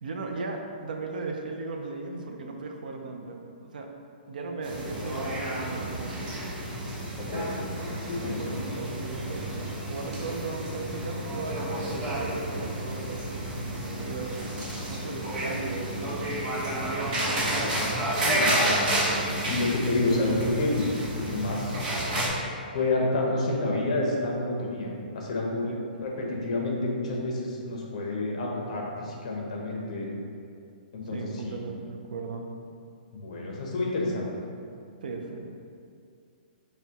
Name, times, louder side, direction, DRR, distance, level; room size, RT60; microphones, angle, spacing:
voice 1, 0.0-3.9 4.3-6.1 8.2-14.4 14.9-16.2 25.7-25.8 31.1-32.5 35.0-35.5, right 3 dB, 60° right, 2 dB, 0.4 m, -37 dB
sound 1, 4.6-22.3, right 1 dB, 40° right, 0.9 m, -30 dB
voice 2, 7.2-7.6 8.0-8.5 17.7-21.8 22.7-25.7 25.9-30.1 30.9-31.6 33.1-34.3, left 2 dB, 40° left, -2 dB, 0.6 m, -29 dB
5.8 x 2.2 x 2.8 m, 2.4 s
hypercardioid pair, 175°, 5 cm